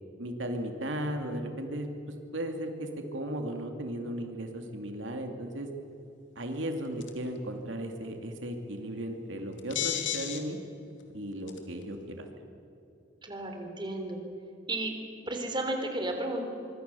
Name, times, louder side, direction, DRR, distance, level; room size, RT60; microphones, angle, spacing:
voice 1, 0.2-5.7 6.4-10.6 11.1-12.3, right 1 dB, 85° right, 4 dB, 2.5 m, -36 dB
sound 1, 7.0-7.3 9.6-10.4 11.0-11.1 11.5-11.8, left 10 dB, 75° left, 2.7 m, -32 dB
voice 2, 13.2-14.2 14.7-14.9 15.3-16.4, right 2 dB, 25° right, 4 dB, 3.5 m, -33 dB
24.5 x 24.0 x 7.0 m, 2.7 s
head